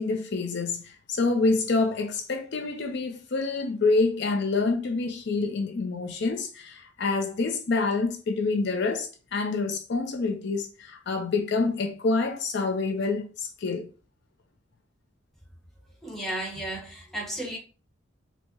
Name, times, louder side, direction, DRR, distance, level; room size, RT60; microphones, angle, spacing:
voice 1, 0.0-13.9, left 3 dB, 60° left, 0.5 m, -27 dB
voice 2, 16.0-17.6, right 1 dB, ahead, 0.8 m, -33 dB
4.5 x 2.1 x 2.8 m
head